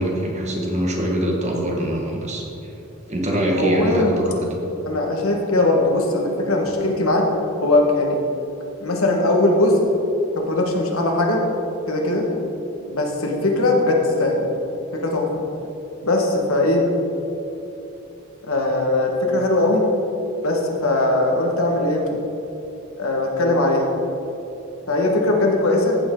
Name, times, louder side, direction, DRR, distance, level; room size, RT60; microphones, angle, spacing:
voice 1, 0.0-2.7 3.1-4.4, equal, 35° right, -1 dB, 1.6 m, -23 dB
voice 2, 3.5-4.2 4.8-7.3 7.6-8.2 8.8-9.8 10.3-11.4 11.9-12.3 12.9-14.5 14.9-15.3 16.0-16.8 18.5-19.8 20.4-22.1 23.0-23.9 24.9-26.0, left 2 dB, 85° left, 1 dB, 1.6 m, -20 dB
14.5 x 7.1 x 3.8 m, 2.9 s
head